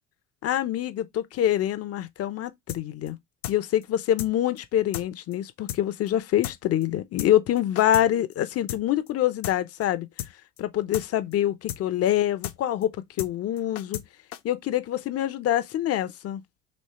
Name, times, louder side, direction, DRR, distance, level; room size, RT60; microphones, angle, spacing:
voice 1, 0.4-3.2 3.5-10.1 10.6-14.0 14.4-16.4, left 12 dB, 35° left, 0.6 m, -25 dB
sound 1, 2.7-2.8 3.1-3.2 3.4-3.6 3.8-3.9 4.2-4.3 4.6-4.7 4.9-5.1 5.3-5.4 5.7-5.8 6.1-6.2 6.4-6.6 6.8-6.9 7.2-7.3 7.6-8.1 8.3-8.4 8.7-8.8 9.1-9.2 9.4-9.6 9.8-9.9 10.2-10.3 10.6-10.7 10.9-11.1 11.3-11.4 11.7-11.8 12.1-12.2 12.4-12.6 12.8-12.9 13.2-13.3 13.6-14.1 14.3-14.4, left 12 dB, 85° left, 0.6 m, -34 dB
3.2 x 3.1 x 4.2 m
hypercardioid pair, 65°, 42 cm